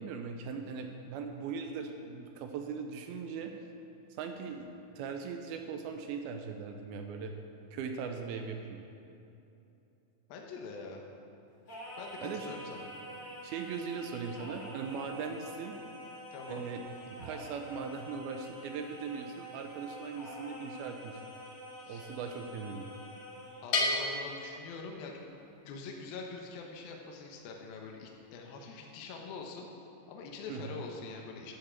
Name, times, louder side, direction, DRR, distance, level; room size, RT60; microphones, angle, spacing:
voice 1, 0.0-3.5 4.1-4.7 4.9-7.3 7.7-8.8 12.2-12.5 13.4-15.8 16.5-21.2 21.9-22.9 30.5-30.8, right 5 dB, 80° right, 5 dB, 2.4 m, -39 dB
voice 2, 10.3-11.1 12.0-12.9 16.3-16.6 21.8-22.1 23.6-25.2 25.7-29.7 30.1-31.5, left 4 dB, 70° left, 1 dB, 2.7 m, -44 dB
Singing, 11.7-23.7, equal, 30° left, 1.9 m, -47 dB
Bell, 23.7-25.4, left 2 dB, 50° left, 2.1 m, -33 dB
12.5 x 7.2 x 7.3 m, 2.9 s
omnidirectional pair, 4.7 m